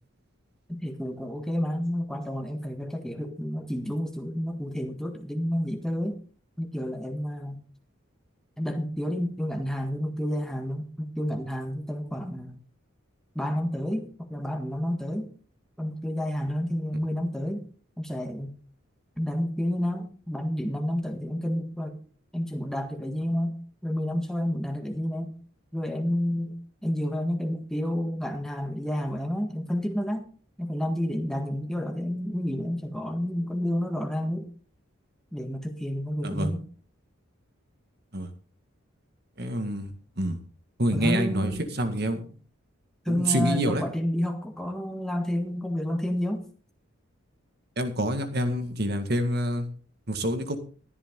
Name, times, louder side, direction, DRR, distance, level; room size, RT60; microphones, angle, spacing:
voice 1, 0.7-6.2 6.6-7.6 8.6-12.6 13.3-15.3 15.8-17.6 18.0-18.5 19.2-22.0 22.3-25.3 25.7-26.5 26.8-30.3 30.6-34.5 35.3-36.6 40.9-41.7 43.0-46.5, equal, ahead, 1.6 m, -30 dB
voice 2, 39.4-39.9 40.2-40.4 40.8-41.5 41.8-42.2 43.1-43.8 47.8-49.7 50.1-50.6, right 1 dB, 50° right, 1.9 m, -27 dB
13.5 x 11.5 x 3.8 m
head